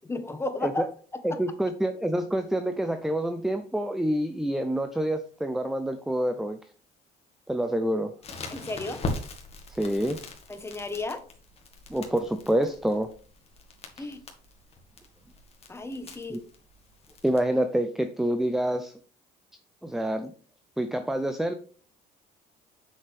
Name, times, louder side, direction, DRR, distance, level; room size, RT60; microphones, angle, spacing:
voice 1, 0.1-0.9 1.3-1.4 8.5-9.0 10.5-11.2 14.0-14.2 15.7-16.4, left 2 dB, 15° left, 8 dB, 1.3 m, -33 dB
voice 2, 1.2-6.6 7.5-8.1 9.7-10.2 11.9-13.1 14.0-14.1 16.3-16.4 17.2-18.9 19.8-20.3 20.8-21.5, right 1 dB, ahead, 9 dB, 0.6 m, -27 dB
Crackle, 8.2-17.4, left 2 dB, 35° left, 2.0 m, -41 dB
7.6 x 6.3 x 3.5 m, 0.41 s
cardioid pair, 110°, 17 cm